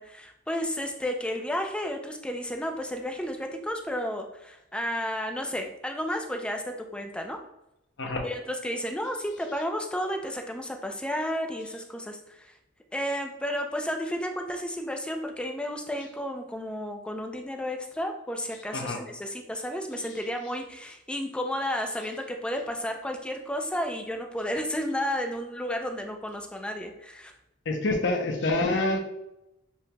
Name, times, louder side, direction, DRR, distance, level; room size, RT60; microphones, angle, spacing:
voice 1, 0.0-7.4 8.2-12.5 12.9-27.3, equal, 5° left, 4 dB, 0.4 m, -32 dB
voice 2, 27.7-29.0, left 2 dB, 65° left, 3 dB, 0.7 m, -26 dB
7.0 x 2.9 x 2.2 m, 0.87 s
head